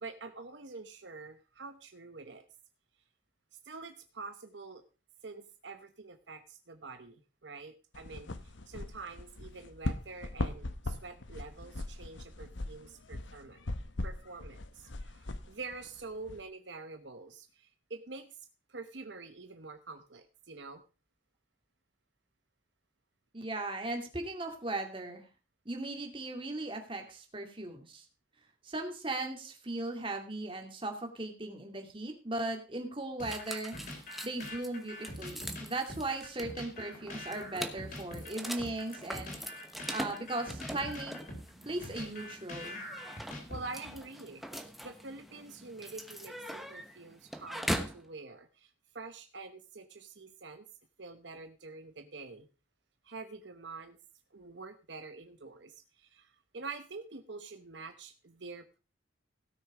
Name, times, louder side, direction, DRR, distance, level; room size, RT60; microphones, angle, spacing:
voice 1, 0.0-2.5 3.7-4.8 5.2-13.6 14.0-20.8 43.2-47.7 47.9-50.7 51.0-52.5 53.0-54.0 54.3-58.8, right 3 dB, 70° right, 8 dB, 1.0 m, -46 dB
sound 1, 7.9-16.4, left 2 dB, 80° left, 1.0 m, -40 dB
voice 2, 23.3-25.3 25.7-28.0 28.6-33.7 34.2-39.4 39.9-41.2 41.7-42.8, right 2 dB, 30° right, 3 dB, 2.4 m, -37 dB
sound 2, 33.2-44.0, left 1 dB, 45° left, 3.6 m, -44 dB
sound 3, 33.3-48.0, equal, ahead, 1.0 m, -42 dB
17.0 x 6.5 x 4.9 m, 0.34 s
head